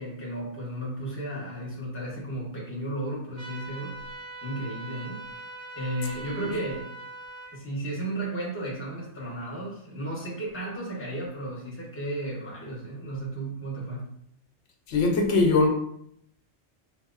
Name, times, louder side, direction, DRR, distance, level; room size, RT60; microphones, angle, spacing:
voice 1, 0.0-5.4 5.8-6.9 7.5-14.1, right 1 dB, 10° left, 0.8 m, -34 dB
sound 1, 3.4-7.5, right 2 dB, 50° right, 0.5 m, -41 dB
voice 2, 14.9-15.7, left 3 dB, 80° left, 0.9 m, -21 dB
3.5 x 2.7 x 2.5 m
omnidirectional pair, 1.2 m